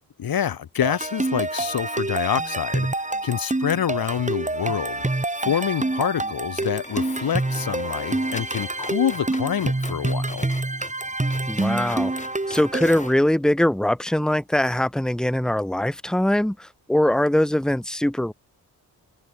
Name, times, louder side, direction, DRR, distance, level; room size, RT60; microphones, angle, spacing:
voice 1, 0.2-5.0 5.4-10.5, left 9 dB, 60° left, 1.4 m, -26 dB
sound 1, 0.8-13.1, right 2 dB, 20° right, 3.7 m, -27 dB
sound 2, 3.5-4.3 4.6-4.7 6.2-6.3 6.6-13.2, left 2 dB, 20° left, 2.0 m, -41 dB
voice 2, 11.5-12.1 12.5-18.3, left 1 dB, ahead, 1.5 m, -22 dB
cardioid pair, 55°, 39 cm